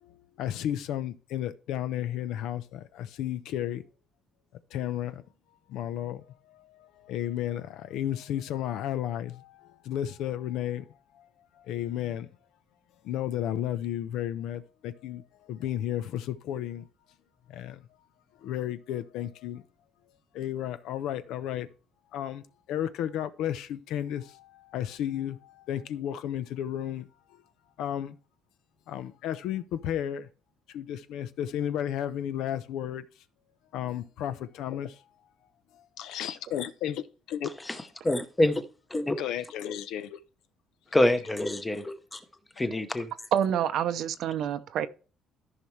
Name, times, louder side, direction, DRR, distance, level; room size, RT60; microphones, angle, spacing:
voice 1, 0.0-3.8 4.7-5.2 5.7-10.9 11.1-11.3 11.6-12.3 13.0-16.9 17.5-17.8 18.4-19.6 20.3-21.7 22.1-27.1 27.8-28.2 28.9-30.3 30.7-33.1 33.7-35.0 35.7-37.5 39.2-40.2, left 11 dB, 70° left, 0.7 m, -33 dB
voice 2, 37.4-38.6 38.9-39.1 40.9-42.2 42.6-43.1, left 1 dB, 10° left, 0.8 m, -26 dB
voice 3, 43.3-44.9, right 9 dB, 55° right, 0.7 m, -27 dB
14.0 x 5.7 x 3.2 m
cardioid pair, 175°, 0 cm